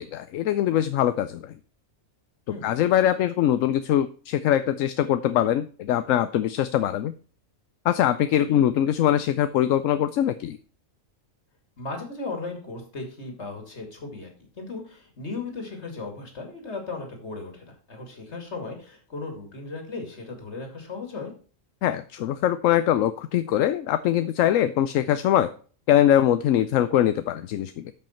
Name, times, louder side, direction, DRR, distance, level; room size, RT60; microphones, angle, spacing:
voice 1, 0.0-1.5 2.6-7.1 7.8-10.6 21.8-25.5 25.9-27.9, left 11 dB, 80° left, 12 dB, 1.0 m, -22 dB
voice 2, 11.8-14.3 14.6-21.3, left 3 dB, 55° left, 4 dB, 2.7 m, -36 dB
13.0 x 5.6 x 4.4 m, 0.40 s
omnidirectional pair, 1.4 m